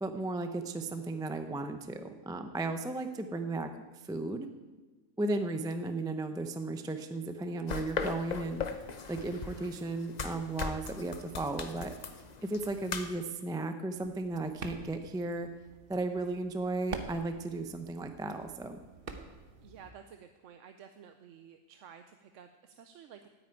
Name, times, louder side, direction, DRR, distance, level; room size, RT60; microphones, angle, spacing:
voice 1, 0.0-3.7 4.0-4.5 5.2-8.6 9.1-11.9 12.4-15.5 15.9-18.8, right 2 dB, 5° right, 7 dB, 0.4 m, -35 dB
sound 1, 7.7-13.1, left 5 dB, 40° left, 0.8 m, -39 dB
sound 2, 14.0-19.9, right 4 dB, 45° right, 1.1 m, -47 dB
voice 2, 19.6-23.3, right 8 dB, 70° right, 7 dB, 1.0 m, -53 dB
9.3 x 9.2 x 9.0 m, 1.2 s
omnidirectional pair, 1.4 m